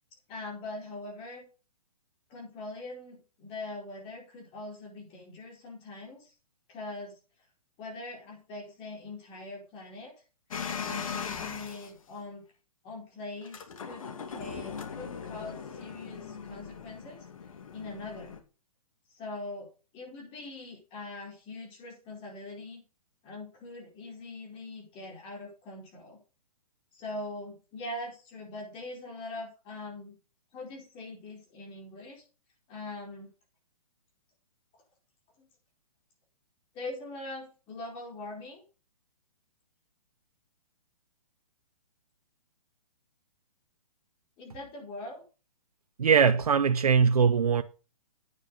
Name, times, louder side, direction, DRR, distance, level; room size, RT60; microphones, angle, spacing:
voice 1, 0.3-1.5 2.3-6.3 6.7-7.2 7.8-10.1 10.8-12.4 12.8-17.3 17.7-18.3 19.1-19.7 19.9-22.8 23.2-26.2 26.9-30.2 30.5-32.2 32.7-33.3 35.4-35.5 36.7-38.6 44.4-45.2, left 2 dB, 30° left, 4.7 m, -42 dB
sound 1, 10.5-11.9 13.4-18.4, left 6 dB, 65° left, 2.4 m, -39 dB
voice 2, 46.0-47.6, right 6 dB, 80° right, 0.8 m, -21 dB
9.3 x 8.4 x 5.5 m
hypercardioid pair, 130°, 19 cm